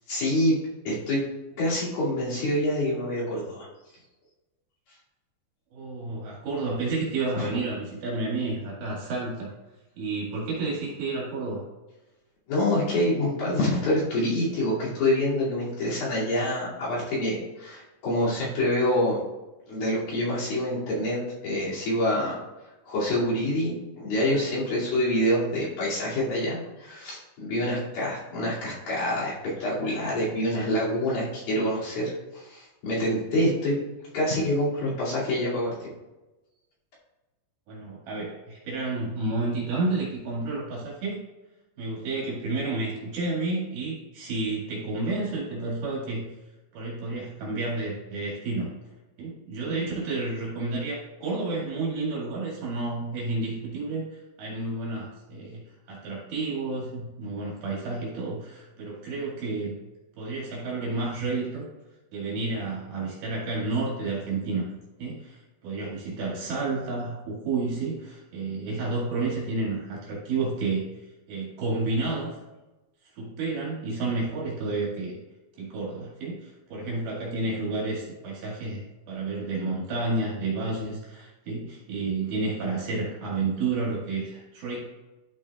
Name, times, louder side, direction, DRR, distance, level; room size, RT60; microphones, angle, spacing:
voice 1, 0.1-0.6 0.8-1.2 1.6-3.7 7.4-7.5 12.5-19.2 19.7-22.4 22.9-29.3 29.6-33.7 34.1-35.7, left 1 dB, 55° left, -9 dB, 4.1 m, -26 dB
voice 2, 5.7-9.5 10.0-11.6 37.7-41.2 41.8-46.2 46.7-48.7 49.2-54.1 54.4-55.6 55.9-59.7 60.2-61.7 62.1-64.7 65.0-70.8 71.3-72.4 73.2-75.2 75.6-84.8, right 3 dB, 60° right, -5 dB, 3.6 m, -30 dB
12.0 x 6.1 x 2.4 m, 1.1 s
omnidirectional pair, 5.2 m